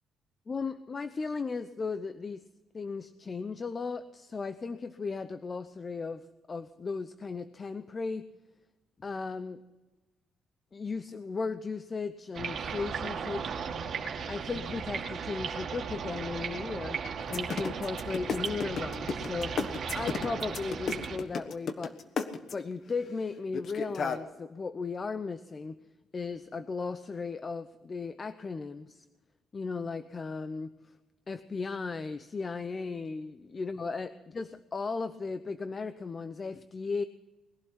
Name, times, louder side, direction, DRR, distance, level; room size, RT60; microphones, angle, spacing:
voice 1, 0.5-2.4 2.7-8.3 9.0-9.6 10.7-13.8 14.3-17.0 17.3-21.9 22.5-25.8 26.1-29.1 29.5-30.9 31.3-37.0, left 4 dB, 35° left, 12 dB, 0.7 m, -36 dB
sound 1, 12.3-21.2, right 6 dB, 60° right, 2.4 m, -36 dB
sound 2, 17.2-22.7 23.5-24.2, left 5 dB, 55° left, 1.3 m, -32 dB
20.5 x 12.0 x 6.0 m, 1.1 s
cardioid pair, 90°, 0 cm